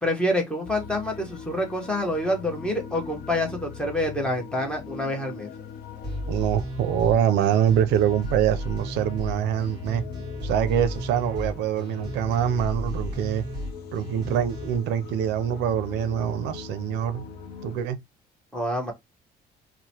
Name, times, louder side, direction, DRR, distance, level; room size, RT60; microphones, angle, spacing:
voice 1, 0.0-5.5 18.5-18.9, left 1 dB, 5° left, 0.9 m, -27 dB
sound 1, 0.6-17.8, left 6 dB, 70° left, 0.5 m, -41 dB
sound 2, 6.0-14.8, left 1 dB, 25° right, 1.6 m, -34 dB
voice 2, 6.3-10.0 10.4-13.4 13.9-17.3 17.6-18.0, right 10 dB, 85° right, 0.4 m, -24 dB
2.9 x 2.0 x 2.7 m
cardioid pair, 110°, 17 cm